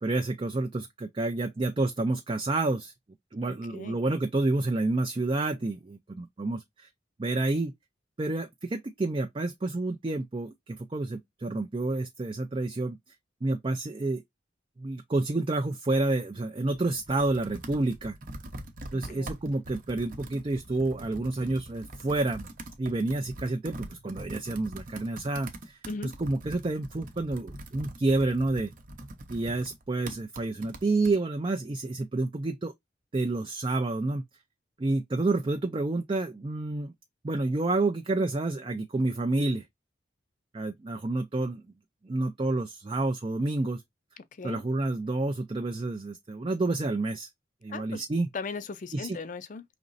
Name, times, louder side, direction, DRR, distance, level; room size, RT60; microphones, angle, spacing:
voice 1, 0.0-2.9 3.3-6.9 7.2-7.7 8.2-13.0 13.4-14.2 14.8-18.2 18.9-22.5 22.8-28.7 29.3-32.7 33.1-34.2 34.8-36.9 37.2-39.6 40.5-41.6 42.0-43.8 44.4-47.3 47.6-48.3 48.9-49.2, right 2 dB, 30° right, 0.4 m, -29 dB
voice 2, 3.4-4.0 18.9-19.3 25.9-26.1 44.4-44.6 47.7-48.0 48.3-49.6, left 4 dB, 45° left, 0.5 m, -38 dB
Computer keyboard, 16.7-31.2, right 1 dB, 45° right, 0.8 m, -43 dB
5.1 x 3.0 x 2.5 m
head